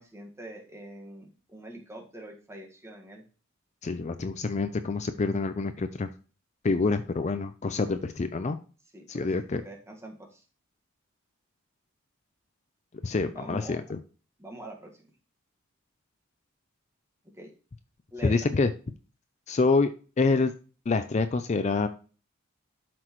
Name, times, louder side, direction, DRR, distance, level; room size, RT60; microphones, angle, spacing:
voice 1, 0.0-3.2 8.9-10.4 13.2-13.8 14.4-15.0 17.4-17.5 18.1-18.5, right 1 dB, 15° right, 1 dB, 1.6 m, -44 dB
voice 2, 3.8-6.1 6.6-8.6 9.1-9.6 13.0-14.0 18.2-18.7 19.5-19.9 20.2-20.5 20.9-21.9, left 3 dB, 35° left, 10 dB, 0.4 m, -26 dB
12.0 x 6.0 x 3.1 m, 0.37 s
head